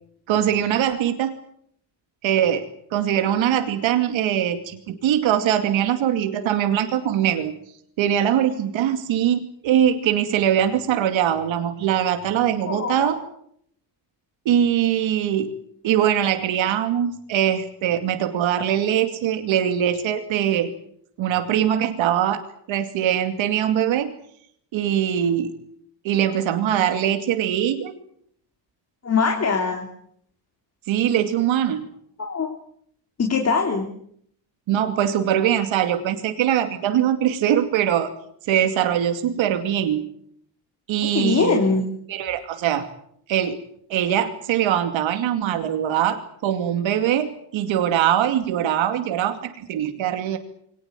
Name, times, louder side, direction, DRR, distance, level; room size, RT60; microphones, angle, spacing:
voice 1, 0.3-1.3 2.2-2.7 2.9-7.6 8.0-13.2 14.5-15.5 15.8-20.7 21.2-22.4 22.7-24.1 24.7-25.5 26.0-27.9 30.9-31.9 34.7-38.1 38.5-40.1 40.9-41.6 42.1-42.9 43.3-43.6 43.9-50.4, right 10 dB, 75° right, 7 dB, 2.6 m, -22 dB
voice 2, 12.7-13.1 29.0-29.9 32.2-32.5 33.2-33.9 41.1-41.8, left 4 dB, 35° left, 2 dB, 3.3 m, -22 dB
24.0 x 19.0 x 9.3 m, 0.69 s
cardioid pair, 110°, 47 cm